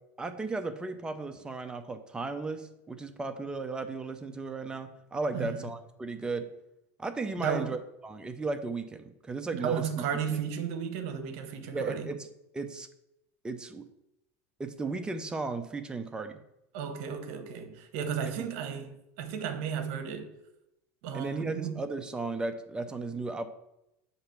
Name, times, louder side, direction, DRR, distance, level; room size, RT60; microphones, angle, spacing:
voice 1, 0.2-6.5 7.0-10.0 11.7-12.3 12.5-12.9 13.4-13.9 14.6-16.4 21.1-23.5, right 3 dB, 10° right, 0.4 m, -35 dB
voice 2, 5.3-5.7 7.4-7.8 9.5-12.1 16.7-20.3 21.0-21.8, right 7 dB, 60° right, 0.9 m, -34 dB
6.6 x 3.0 x 5.7 m
supercardioid pair, 145°, 8 cm